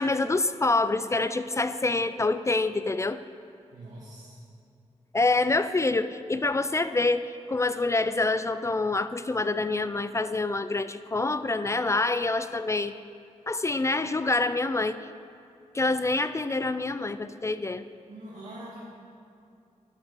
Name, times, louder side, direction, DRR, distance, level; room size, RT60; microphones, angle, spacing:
voice 1, 0.0-3.2 5.1-12.9 13.5-15.1 15.7-17.8, left 3 dB, 25° left, 12 dB, 0.3 m, -26 dB
voice 2, 3.7-4.4 18.1-18.8, right 1 dB, 75° right, -7 dB, 1.8 m, -43 dB
9.9 x 7.3 x 6.7 m, 2.5 s
wide cardioid pair, 95°, 13 cm